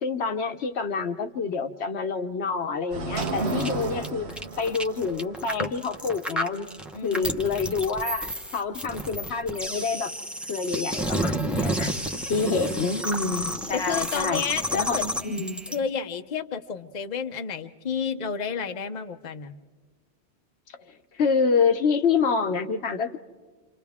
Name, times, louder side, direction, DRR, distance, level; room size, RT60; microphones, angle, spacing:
voice 1, 0.0-6.7 7.0-10.1 10.5-11.9 12.3-14.4 14.7-15.6 20.9-23.2, left 5 dB, 75° left, 7 dB, 1.2 m, -27 dB
sound 1, 2.9-8.1, right 3 dB, 75° right, 1.4 m, -34 dB
sound 2, 3.1-15.8, equal, ahead, 0.9 m, -31 dB
voice 2, 3.4-3.8 6.9-7.5 12.4-13.0 13.7-15.0 15.7-19.5, left 6 dB, 45° left, 7 dB, 0.8 m, -31 dB
29.0 x 27.0 x 3.6 m, 1.5 s
omnidirectional pair, 1.1 m